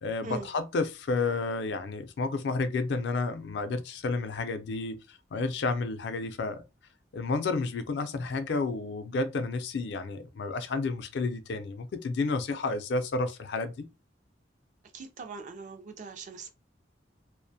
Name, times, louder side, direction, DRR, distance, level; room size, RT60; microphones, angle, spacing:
voice 1, 0.0-6.6 7.1-13.9, left 3 dB, 65° left, 0.4 m, -31 dB
voice 2, 14.9-16.5, right 4 dB, 40° right, 0.4 m, -41 dB
2.4 x 2.1 x 2.6 m
head